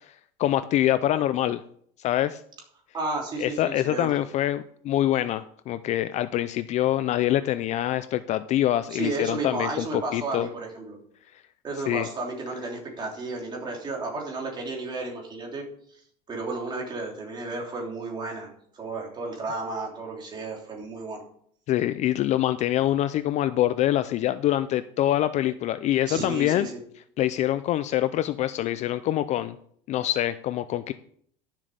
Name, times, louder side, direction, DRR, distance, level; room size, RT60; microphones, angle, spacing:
voice 1, 0.4-1.6 2.0-2.4 3.4-10.5 11.9-12.1 21.7-26.7 27.2-29.6 29.9-30.9, left 13 dB, 40° left, 13 dB, 0.4 m, -25 dB
voice 2, 2.9-4.1 8.9-11.0 11.6-16.0 16.3-18.5 18.7-21.2 26.1-26.8, right 3 dB, 25° right, -1 dB, 3.2 m, -33 dB
12.0 x 7.4 x 5.1 m, 0.63 s
cardioid pair, 160°, 19 cm